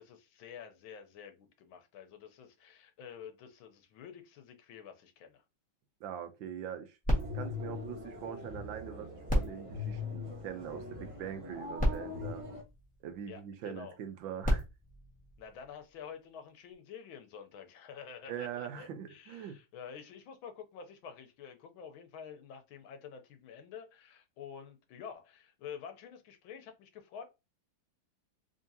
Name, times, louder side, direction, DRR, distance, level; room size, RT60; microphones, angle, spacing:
voice 1, 0.0-5.4 13.3-14.0 15.4-27.2, left 7 dB, 85° left, 1.6 m, -49 dB
voice 2, 6.0-7.0 7.3-12.4 13.0-14.6 18.3-19.6, right 9 dB, 80° right, 1.4 m, -42 dB
sound 1, 7.0-8.7 9.2-10.8 11.5-11.6 11.8-13.4 14.2-16.0 16.7-16.8, equal, 5° left, 1.2 m, -35 dB
sound 2, 7.1-12.6, left 4 dB, 25° right, 0.6 m, -42 dB
3.7 x 3.6 x 2.7 m
omnidirectional pair, 2.2 m